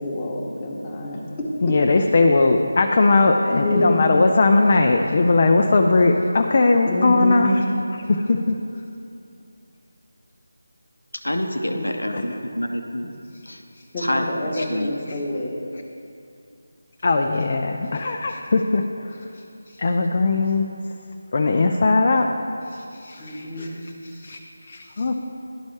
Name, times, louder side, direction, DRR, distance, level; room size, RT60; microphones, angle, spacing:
voice 1, 0.0-1.8 3.2-4.1 6.8-7.6 11.7-11.9 13.9-15.6 23.2-23.8, left 1 dB, 20° left, -4 dB, 1.0 m, -27 dB
voice 2, 1.6-7.5 8.1-8.6 12.1-12.2 14.6-14.7 17.0-18.8 19.8-20.7 21.3-22.3 22.7-23.7 24.1-24.4 24.7-25.1, left 3 dB, 40° left, 3 dB, 0.4 m, -19 dB
voice 3, 11.1-13.1 13.5-13.6 14.0-14.3 14.7-14.9, left 1 dB, 85° left, 4 dB, 0.7 m, -26 dB
12.0 x 4.1 x 3.2 m, 2.6 s
figure-of-eight pair, 160°, 0 cm